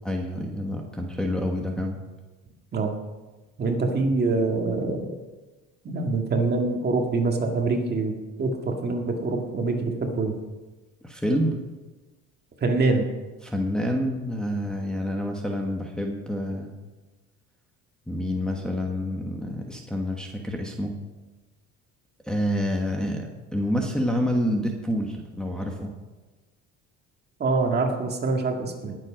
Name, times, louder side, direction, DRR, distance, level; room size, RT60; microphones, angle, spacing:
voice 1, 0.0-2.0 11.0-11.6 13.4-16.7 18.1-20.9 22.3-25.9, equal, 5° left, -1 dB, 1.3 m, -28 dB
voice 2, 3.6-5.2 5.8-10.4 12.6-13.1 27.4-29.0, right 3 dB, 30° right, 2 dB, 1.9 m, -25 dB
19.0 x 7.6 x 5.2 m, 1.2 s
cardioid pair, 130°, 31 cm